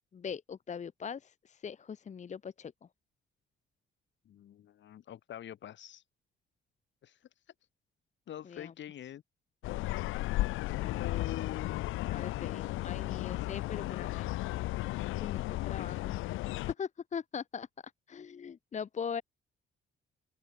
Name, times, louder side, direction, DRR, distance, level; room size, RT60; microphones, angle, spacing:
voice 1, 0.1-2.7 8.5-8.7 10.8-11.0 12.1-14.3 15.2-16.2 16.8-17.7 18.1-19.2, left 7 dB, 35° left, 0.7 m, -41 dB
voice 2, 4.2-6.0 7.0-7.2 8.3-9.2 10.7-11.9, left 11 dB, 65° left, 3.2 m, -44 dB
sound 1, 9.6-16.7, left 18 dB, 85° left, 0.6 m, -34 dB
open air
cardioid pair, 90°, 20 cm